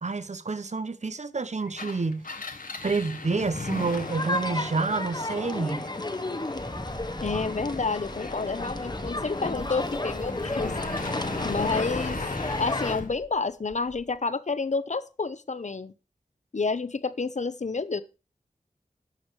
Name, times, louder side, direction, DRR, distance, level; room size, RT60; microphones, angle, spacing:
voice 1, 0.0-2.3 2.8-5.9, right 4 dB, 55° right, 0.9 m, -28 dB
Engine, 1.7-13.1, left 3 dB, 85° left, 1.3 m, -37 dB
sound 1, 3.7-13.0, left 2 dB, 30° left, 0.9 m, -33 dB
Wind, 6.5-13.4 13.7-14.2, equal, ahead, 1.0 m, -40 dB
voice 2, 7.2-10.7 11.4-12.2 12.6-15.9 16.5-18.0, left 4 dB, 60° left, 0.8 m, -29 dB
11.5 x 7.2 x 4.8 m
wide cardioid pair, 70°, 14 cm